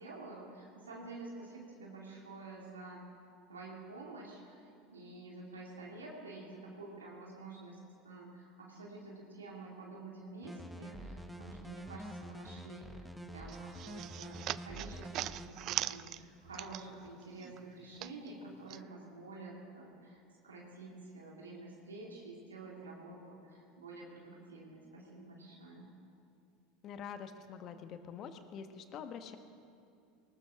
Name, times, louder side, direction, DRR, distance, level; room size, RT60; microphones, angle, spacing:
voice 1, 0.0-3.0 3.5-25.9, right 2 dB, 85° right, -3 dB, 2.5 m, -49 dB
sound 1, 10.4-15.5, right 1 dB, ahead, 1.1 m, -47 dB
sound 2, 13.5-17.1 17.4-18.8, right 14 dB, 50° right, 0.3 m, -41 dB
voice 2, 26.8-29.4, left 7 dB, 45° left, 8 dB, 1.2 m, -46 dB
19.5 x 19.0 x 3.7 m, 2.5 s
hypercardioid pair, 80°, 0 cm